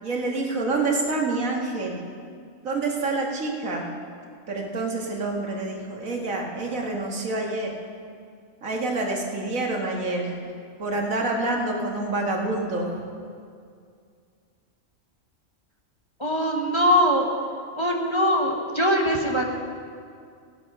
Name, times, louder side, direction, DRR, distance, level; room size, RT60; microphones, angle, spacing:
voice 1, 0.0-2.0 2.6-3.8 4.5-7.8 8.6-10.3 10.8-13.0, right 2 dB, 90° right, 0 dB, 2.1 m, -27 dB
voice 2, 16.2-17.3 17.8-19.4, equal, 25° left, 0 dB, 1.2 m, -22 dB
16.0 x 11.0 x 5.5 m, 2.3 s
omnidirectional pair, 1.4 m